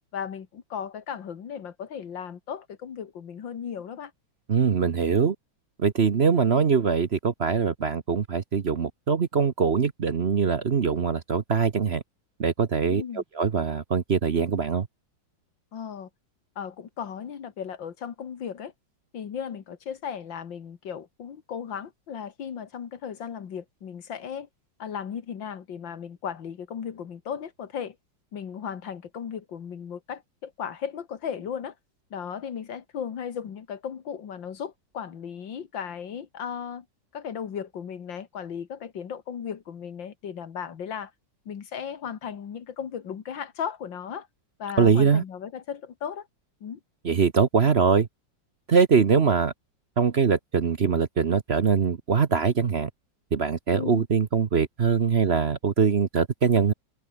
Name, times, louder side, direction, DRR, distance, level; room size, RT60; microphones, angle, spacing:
voice 1, 0.1-4.1 12.9-13.2 15.7-16.1 16.6-18.7 19.1-24.5 24.8-28.0 28.3-31.7 32.1-36.9 37.1-41.1 41.5-44.3 44.6-46.3 46.6-46.8 53.7-54.0, left 7 dB, 85° left, 2.4 m, -36 dB
voice 2, 4.5-5.3 5.8-12.0 12.4-13.0 13.4-14.9 44.8-45.2 47.0-48.1 48.7-49.5 50.0-52.9 53.3-56.7, right 6 dB, 40° right, 1.0 m, -22 dB
omnidirectional pair, 2.0 m